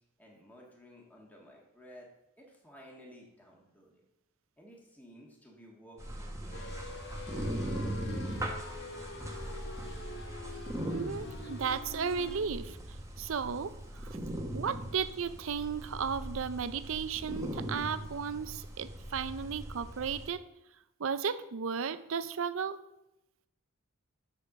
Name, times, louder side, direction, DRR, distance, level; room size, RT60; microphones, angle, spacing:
voice 1, 0.2-2.1 2.4-4.0 4.6-6.8, equal, 10° left, -2 dB, 1.7 m, -54 dB
sound 1, 6.0-20.3, right 1 dB, 15° right, 1.2 m, -40 dB
sound 2, 6.5-12.4, left 2 dB, 55° left, 1.3 m, -45 dB
voice 2, 10.9-12.8 13.2-13.7 14.0-14.2 14.5-20.4 21.0-22.8, right 6 dB, 65° right, 13 dB, 0.5 m, -34 dB
6.8 x 6.5 x 6.6 m, 0.87 s
head